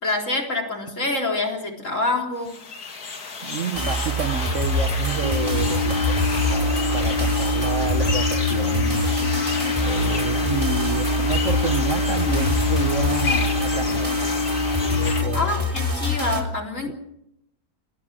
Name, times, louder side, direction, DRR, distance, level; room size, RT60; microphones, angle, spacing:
voice 1, 0.0-2.6 15.3-16.9, left 2 dB, 45° left, 2 dB, 4.3 m, -26 dB
sound 1, 2.4-15.2, left 4 dB, 60° left, 2.6 m, -31 dB
voice 2, 3.4-9.2 9.8-14.2 14.8-15.5 16.9-17.0, right 6 dB, 50° right, 9 dB, 1.2 m, -30 dB
sound 2, 3.7-16.4, equal, 20° right, 3.7 m, -25 dB
sound 3, 5.2-15.2, left 4 dB, 70° right, 2.0 m, -26 dB
28.5 x 19.5 x 6.2 m, 0.80 s
omnidirectional pair, 1.8 m